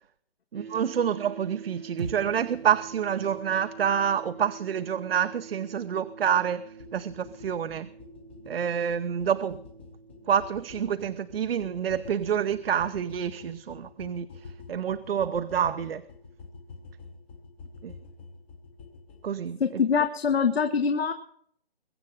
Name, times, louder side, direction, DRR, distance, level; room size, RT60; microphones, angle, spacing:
voice 1, 0.5-6.6 6.9-7.9 8.5-9.6 10.3-14.3 14.7-16.0 17.8-17.9 19.2-19.6, right 8 dB, 70° right, 0.7 m, -27 dB
sound 1, 0.5-12.7, right 5 dB, 85° right, 3.8 m, -47 dB
sound 2, 2.0-6.3, right 5 dB, 30° right, 0.9 m, -45 dB
sound 3, 6.8-19.3, left 4 dB, 10° left, 0.7 m, -47 dB
voice 2, 19.6-21.1, left 6 dB, 80° left, 1.3 m, -24 dB
22.0 x 7.4 x 5.5 m
hypercardioid pair, 170°, 31 cm